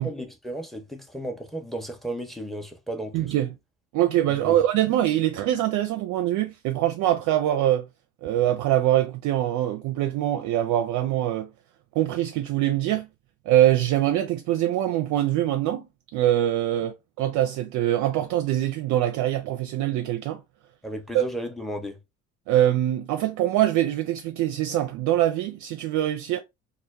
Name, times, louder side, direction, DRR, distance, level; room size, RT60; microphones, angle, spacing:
voice 1, 0.0-3.3 4.3-4.6 20.8-22.0, right 1 dB, ahead, 0.6 m, -34 dB
voice 2, 3.1-3.5 3.9-7.9 8.2-11.5 12.0-13.1 13.5-15.9 16.1-20.4 21.1-21.3 22.5-26.4, right 13 dB, 50° right, 0.4 m, -23 dB
2.1 x 2.1 x 3.3 m
hypercardioid pair, 55°, 40 cm